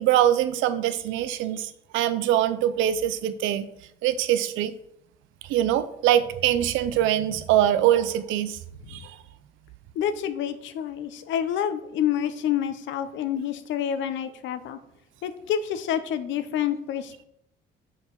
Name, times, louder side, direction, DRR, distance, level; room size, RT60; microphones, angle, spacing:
voice 1, 0.0-3.7 4.0-4.7 5.4-8.6 8.9-9.2, right 11 dB, 90° right, 13 dB, 0.6 m, -23 dB
voice 2, 9.9-14.8 15.2-17.2, left 9 dB, 75° left, 11 dB, 0.8 m, -28 dB
6.1 x 4.8 x 5.3 m, 0.76 s
cardioid pair, 105°, 20 cm